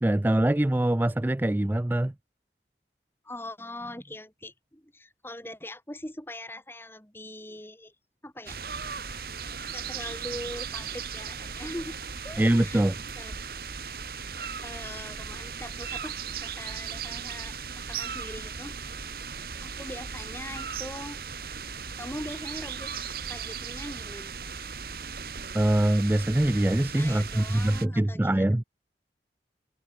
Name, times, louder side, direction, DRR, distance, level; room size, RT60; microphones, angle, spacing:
voice 1, 0.0-2.1 12.4-13.0 25.5-28.6, right 1 dB, 10° right, 0.3 m, -23 dB
voice 2, 3.2-8.0 8.2-8.6 9.7-12.0 12.2-12.8 13.2-13.3 14.6-18.8 19.6-21.2 22.0-24.3 27.0-28.6, left 1 dB, 15° left, 3.9 m, -41 dB
sound 1, 8.5-27.9, right 6 dB, 55° right, 1.6 m, -37 dB
head